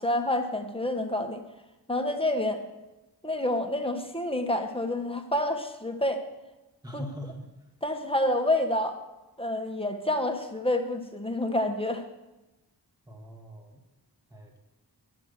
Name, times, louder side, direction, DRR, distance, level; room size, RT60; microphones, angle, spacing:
voice 1, 0.0-1.4 1.9-2.6 3.2-6.2 6.9-7.0 7.8-9.0 9.4-12.0, left 1 dB, 15° left, 5 dB, 1.5 m, -28 dB
voice 2, 6.8-7.5 13.1-13.8 14.3-14.6, equal, 10° right, 1 dB, 1.9 m, -41 dB
11.5 x 7.7 x 6.7 m, 1.0 s
wide cardioid pair, 70°, 41 cm